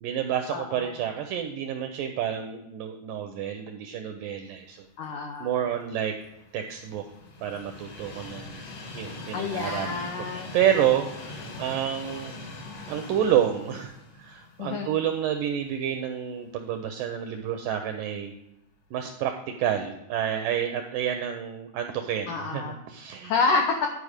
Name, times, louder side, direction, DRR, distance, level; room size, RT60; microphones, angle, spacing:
voice 1, 0.0-4.9 5.4-6.1 6.5-7.0 7.4-8.7 8.9-10.0 10.5-12.4 12.9-18.3 18.9-23.3, right 9 dB, 85° right, 5 dB, 1.9 m, -29 dB
voice 2, 0.5-0.9 5.0-5.6 9.3-10.6 14.6-14.9 22.3-22.8 23.2-23.9, left 4 dB, 85° left, 2 dB, 1.7 m, -28 dB
Train, 5.7-15.8 16.2-16.3 17.4-17.5, left 2 dB, 60° left, 1.8 m, -42 dB
11.0 x 4.8 x 4.9 m, 0.86 s
omnidirectional pair, 4.5 m